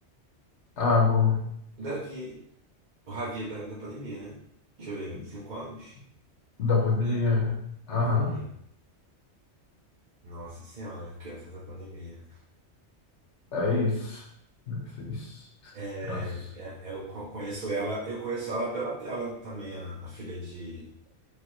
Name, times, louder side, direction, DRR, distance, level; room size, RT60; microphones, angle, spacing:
voice 1, 0.8-1.4 5.1-5.2 6.6-7.5 7.9-8.3 13.5-14.2 14.7-15.4 15.6-15.7 16.0-16.3, left 4 dB, 75° left, -2 dB, 1.3 m, -25 dB
voice 2, 1.8-2.4 3.1-4.4 4.8-5.9 7.0-7.1 7.9-8.5 10.2-12.2 15.7-20.9, right 2 dB, 50° right, -5 dB, 0.7 m, -36 dB
4.8 x 2.4 x 3.0 m, 0.73 s
omnidirectional pair, 1.2 m